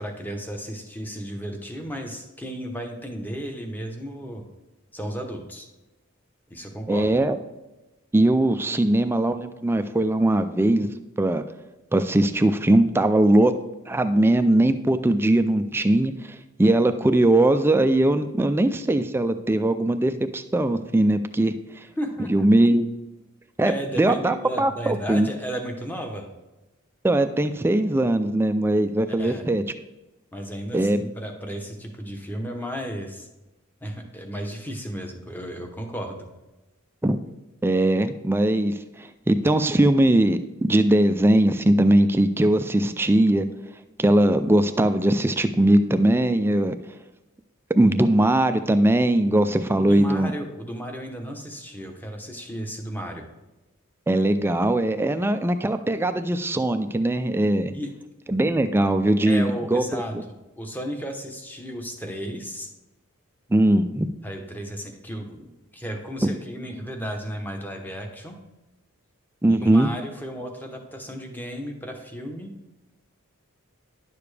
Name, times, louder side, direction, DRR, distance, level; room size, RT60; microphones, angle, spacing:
voice 1, 0.0-4.4 4.9-5.7 6.5-7.2 22.0-22.7 23.6-26.3 29.1-29.4 30.3-33.3 33.8-36.3 49.8-53.2 57.7-57.9 59.3-60.2 60.6-62.7 64.2-68.4 69.5-72.5, equal, 10° left, 3 dB, 0.9 m, -34 dB
voice 2, 6.9-7.4 8.1-10.9 11.2-11.4 11.9-13.6 13.9-21.9 22.3-22.8 23.6-25.3 27.0-29.6 30.7-31.0 37.0-37.2 37.6-43.4 44.0-46.8 47.8-50.3 54.1-57.7 58.3-60.0 63.5-64.1 69.4-69.9, right 1 dB, 10° right, 10 dB, 0.3 m, -20 dB
10.5 x 6.8 x 3.3 m, 1.0 s
head